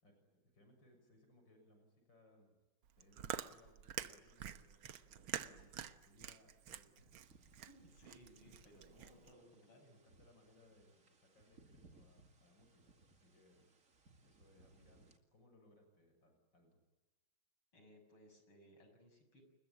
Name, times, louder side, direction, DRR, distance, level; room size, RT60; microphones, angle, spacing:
voice 1, 0.0-2.6 3.0-7.2 8.3-13.7 14.2-16.8, left 1 dB, 60° left, 5 dB, 7.7 m, -68 dB
Chewing mastication, 2.8-9.3, right 10 dB, 80° right, 1.9 m, -47 dB
sound 1, 7.2-15.2, right 2 dB, 40° right, 2.8 m, -67 dB
voice 2, 7.7-10.0 17.7-19.4, equal, 85° left, 6 dB, 7.3 m, -63 dB
30.0 x 21.0 x 8.8 m, 1.1 s
omnidirectional pair, 2.2 m